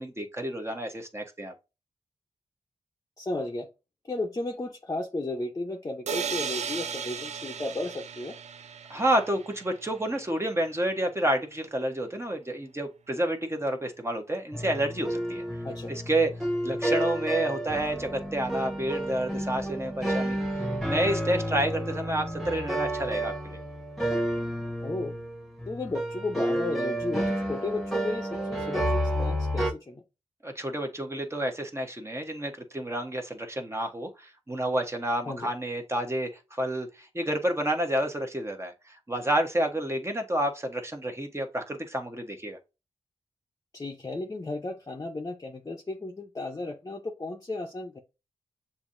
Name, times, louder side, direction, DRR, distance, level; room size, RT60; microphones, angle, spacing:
voice 1, 0.0-1.5 8.9-15.4 15.9-16.3 16.6-20.4 20.8-23.6 30.4-42.6, right 1 dB, 20° right, 1.0 m, -29 dB
voice 2, 3.2-3.7 4.0-8.3 15.6-15.9 24.8-25.1 25.7-30.0 35.2-35.5 43.7-48.0, left 2 dB, 30° left, 0.7 m, -34 dB
sound 1, 6.1-9.9, right 7 dB, 70° right, 0.5 m, -36 dB
sound 2, 14.5-29.7, right 1 dB, ahead, 1.2 m, -30 dB
6.9 x 2.7 x 2.6 m
cardioid pair, 50°, 12 cm